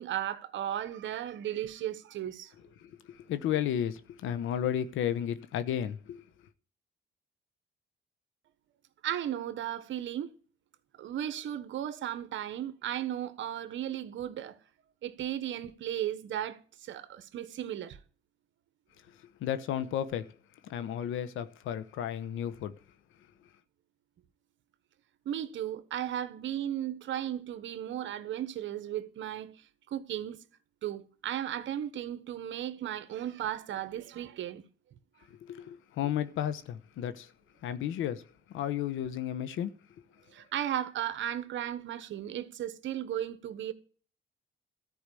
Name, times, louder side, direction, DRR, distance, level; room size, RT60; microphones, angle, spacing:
voice 1, 0.0-2.5 9.0-10.3 11.0-14.6 15.0-18.0 25.2-29.6 29.9-30.4 30.8-34.6 40.3-43.7, right 11 dB, 75° right, 1.2 m, -35 dB
voice 2, 2.8-6.2 19.4-20.3 20.7-22.7 35.5-37.3 37.6-38.2 38.5-39.7, left 10 dB, 85° left, 1.1 m, -33 dB
13.5 x 4.9 x 8.3 m
cardioid pair, 90°, 20 cm